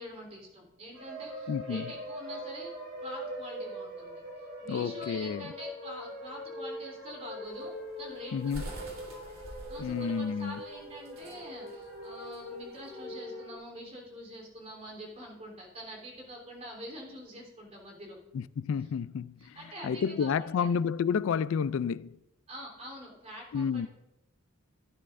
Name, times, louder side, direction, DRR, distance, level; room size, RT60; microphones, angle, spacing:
voice 1, 0.0-2.7 3.0-4.2 4.6-7.7 8.0-8.8 9.7-18.2 19.4-20.7 22.5-23.9, equal, 30° right, 3.4 m, -45 dB
sound 1, 0.9-13.6, equal, 60° right, 3.6 m, -42 dB
voice 2, 1.5-1.9 4.7-5.5 8.3-8.7 9.8-10.6 18.3-22.2 23.5-23.9, left 6 dB, 70° left, 0.3 m, -30 dB
sound 2, 7.5-13.0, right 1 dB, 90° right, 3.4 m, -46 dB
16.5 x 9.8 x 2.6 m
head